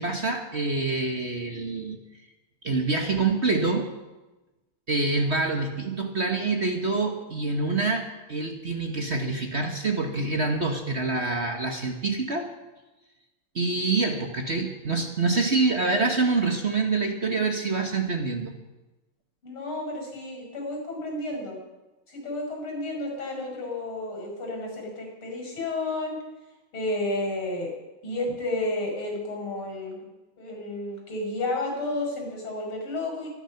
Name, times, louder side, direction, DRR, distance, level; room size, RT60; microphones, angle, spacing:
voice 1, 0.0-2.0 2.6-3.9 4.9-12.5 13.5-18.5, right 3 dB, 35° right, 3 dB, 1.5 m, -26 dB
voice 2, 19.4-21.6 22.1-26.2 26.7-27.7 28.0-30.1 30.4-33.3, left 2 dB, 80° left, 1 dB, 6.7 m, -31 dB
24.0 x 10.0 x 5.9 m, 1.1 s
omnidirectional pair, 2.3 m